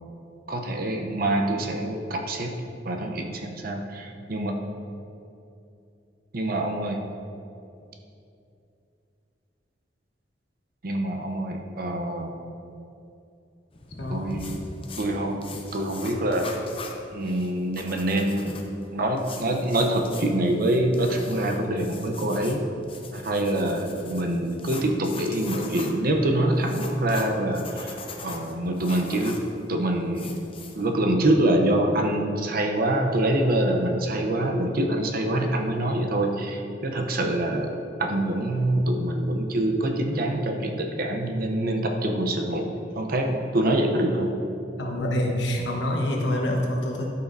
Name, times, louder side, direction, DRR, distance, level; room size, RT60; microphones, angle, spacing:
voice 1, 0.5-2.6 2.8-4.6 6.3-7.0 10.8-12.3 14.1-14.6 15.0-16.6 17.1-18.6 18.9-22.6 23.1-30.4 30.7-42.7 43.0-44.3, right 1 dB, 55° right, 3 dB, 0.7 m, -25 dB
sound 1, 13.7-30.8, left 4 dB, 30° left, 0.7 m, -42 dB
voice 2, 14.0-14.4 44.8-47.0, left 1 dB, 75° left, -1 dB, 1.2 m, -26 dB
12.5 x 5.6 x 2.6 m, 2.6 s
head